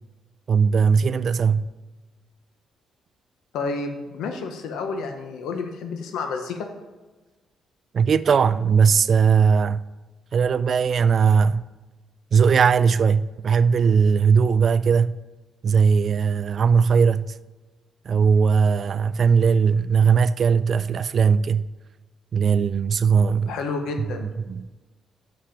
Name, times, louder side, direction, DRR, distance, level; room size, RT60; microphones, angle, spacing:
voice 1, 0.5-1.7 7.9-9.8 10.3-11.6 12.3-15.2 15.6-17.3 18.1-21.7 22.3-23.6 24.5-24.7, right 6 dB, 50° right, 0.3 m, -19 dB
voice 2, 3.5-6.7 23.5-24.3, left 4 dB, 85° left, 0.8 m, -30 dB
7.1 x 5.8 x 5.1 m
cardioid pair, 90°, 0 cm